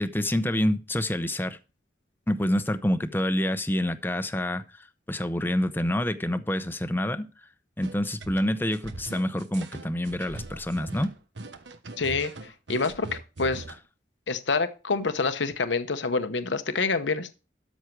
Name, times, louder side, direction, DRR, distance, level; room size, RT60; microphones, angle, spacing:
voice 1, 0.0-1.6 2.3-7.3 7.8-11.1, left 1 dB, 10° left, 0.7 m, -27 dB
sound 1, 7.8-13.8, right 2 dB, 80° right, 1.1 m, -41 dB
voice 2, 12.0-13.6 14.3-17.3, left 4 dB, 85° left, 1.0 m, -27 dB
13.0 x 6.3 x 4.7 m
head